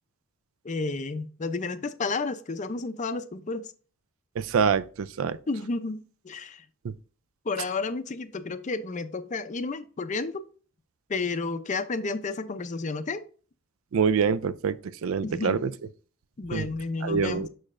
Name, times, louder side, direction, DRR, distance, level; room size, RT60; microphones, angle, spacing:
voice 1, 0.6-3.7 5.5-6.6 7.5-10.4 11.1-13.2 15.2-15.6 16.4-17.5, left 3 dB, 35° left, 0.5 m, -31 dB
voice 2, 4.4-4.8 5.2-5.4 13.9-15.7 16.5-16.7 17.0-17.5, right 6 dB, 65° right, 0.4 m, -25 dB
6.5 x 6.2 x 2.5 m
head